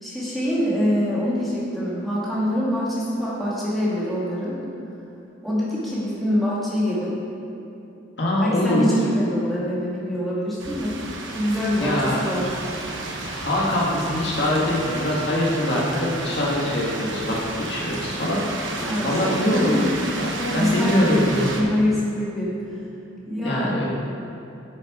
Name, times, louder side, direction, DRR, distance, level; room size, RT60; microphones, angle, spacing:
voice 1, 0.0-4.6 5.4-7.2 8.4-12.5 18.8-19.2 19.5-19.8 20.1-22.5 23.3-23.7, equal, ahead, -9 dB, 1.9 m, -25 dB
voice 2, 8.2-8.9 11.8-12.2 13.3-17.4 17.7-18.7 19.0-19.7 20.2-21.6 23.4-23.9, left 1 dB, 60° left, -5 dB, 1.8 m, -23 dB
sound 1, 10.6-21.6, right 2 dB, 75° right, 1.1 m, -32 dB
10.0 x 6.6 x 4.9 m, 2.8 s
head